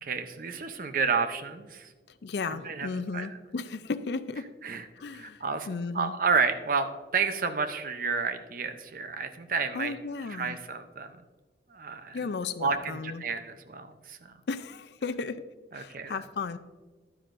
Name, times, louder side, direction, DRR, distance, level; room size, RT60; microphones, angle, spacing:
voice 1, 0.0-1.9 2.4-2.9 3.1-3.3 4.6-4.8 5.1-6.9 7.1-9.9 10.3-11.2 11.7-12.2 12.6-14.2 15.7-16.2, right 5 dB, 50° right, 9 dB, 0.6 m, -30 dB
voice 2, 2.2-4.5 5.0-6.1 9.7-10.6 12.1-13.3 14.5-15.4 15.7-16.6, left 4 dB, 65° left, 13 dB, 0.4 m, -35 dB
11.0 x 9.9 x 2.6 m, 1.3 s
head